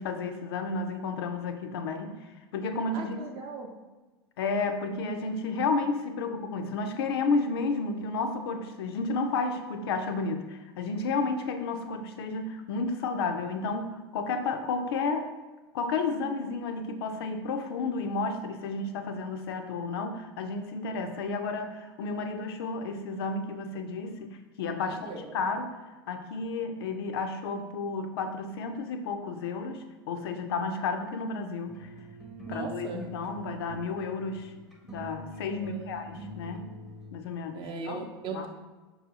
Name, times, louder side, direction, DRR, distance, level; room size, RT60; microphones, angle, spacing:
voice 1, 0.0-3.3 4.4-15.3 15.7-25.8 26.1-31.9 32.5-34.5 34.9-36.7 37.1-38.0 38.3-38.5, left 4 dB, 65° left, 5 dB, 0.5 m, -32 dB
voice 2, 2.9-3.7 24.8-25.3 32.5-33.0 35.6-36.0 37.5-38.5, right 4 dB, 40° right, 3 dB, 0.6 m, -39 dB
sound 1, 31.7-37.1, right 2 dB, ahead, 0.7 m, -44 dB
5.2 x 2.7 x 2.8 m, 1.2 s
hypercardioid pair, 85°, 14 cm